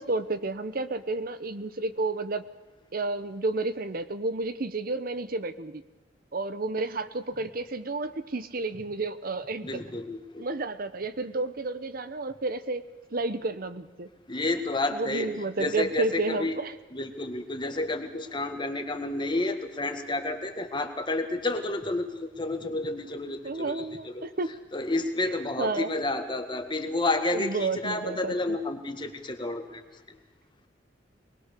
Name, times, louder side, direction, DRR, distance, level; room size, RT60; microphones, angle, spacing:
voice 1, 0.0-2.4 2.9-5.8 6.3-9.8 10.4-12.8 13.1-14.1 14.9-16.7 23.4-24.6 25.6-25.9 27.3-28.6, right 3 dB, 55° right, 12 dB, 1.0 m, -31 dB
voice 2, 9.6-10.5 14.3-15.3 15.6-16.6 16.9-24.3 24.7-30.2, left 2 dB, 25° left, 6 dB, 2.0 m, -30 dB
23.0 x 20.5 x 6.8 m, 1.2 s
head